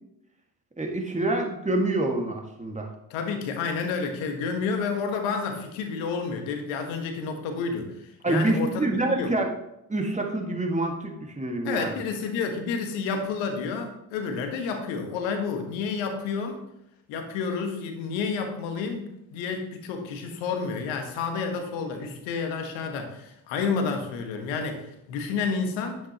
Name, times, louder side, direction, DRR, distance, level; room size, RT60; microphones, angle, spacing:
voice 1, 0.8-2.9 8.2-9.5 9.9-12.0, right 2 dB, 15° right, 2 dB, 1.9 m, -26 dB
voice 2, 3.1-9.3 11.6-16.6 17.1-26.0, left 5 dB, 70° left, 5 dB, 1.6 m, -30 dB
10.0 x 8.0 x 3.0 m, 0.82 s
figure-of-eight pair, 45°, 47 cm